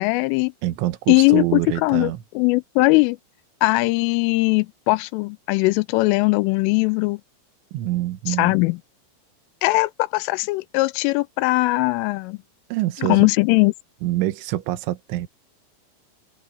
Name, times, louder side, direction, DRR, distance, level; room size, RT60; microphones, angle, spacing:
voice 1, 0.0-0.5 1.1-3.2 3.6-7.2 8.3-8.8 9.6-12.4 13.1-13.7, left 24 dB, 85° left, 3.1 m, -20 dB
voice 2, 0.6-2.2 7.7-8.6 12.7-13.3 14.0-15.3, right 15 dB, 75° right, 3.6 m, -25 dB
omnidirectional pair, 5.7 m